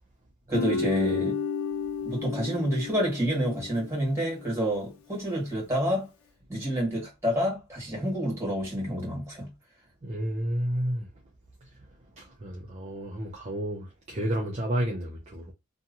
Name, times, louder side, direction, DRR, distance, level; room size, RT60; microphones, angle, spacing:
Guitar, 0.5-3.8, left 6 dB, 70° left, 0.5 m, -31 dB
voice 1, 0.5-1.4 2.0-6.1 6.5-9.5, equal, 15° right, 1.6 m, -28 dB
voice 2, 10.0-11.1 12.2-15.5, right 1 dB, 30° right, 0.5 m, -31 dB
2.8 x 2.3 x 2.6 m
head